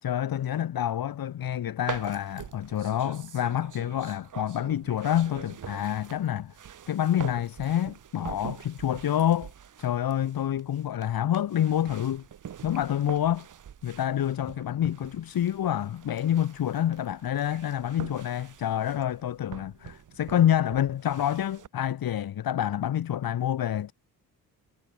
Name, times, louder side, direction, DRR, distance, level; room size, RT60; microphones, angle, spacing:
voice 1, 0.0-6.5 6.9-9.5 9.8-12.2 12.6-13.5 13.8-23.9, left 10 dB, 65° left, 4.3 m, -27 dB
sound 1, 1.9-21.7, right 9 dB, 55° right, 7.6 m, -45 dB
wide cardioid pair, 170°, 37 cm